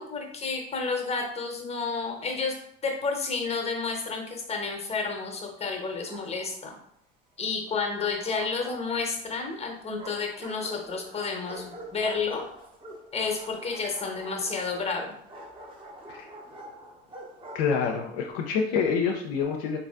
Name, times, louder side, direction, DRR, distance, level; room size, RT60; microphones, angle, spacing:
voice 1, 0.0-2.5 2.8-6.7 7.4-12.4 13.1-15.1, left 4 dB, 20° left, 2 dB, 0.9 m, -31 dB
Bark, 5.8-6.7 7.7-9.3 10.0-18.1, right 1 dB, 15° right, 0.9 m, -45 dB
voice 2, 17.5-19.8, left 6 dB, 60° left, 1 dB, 0.5 m, -27 dB
4.0 x 2.6 x 2.4 m, 0.72 s
figure-of-eight pair, 65°, 32 cm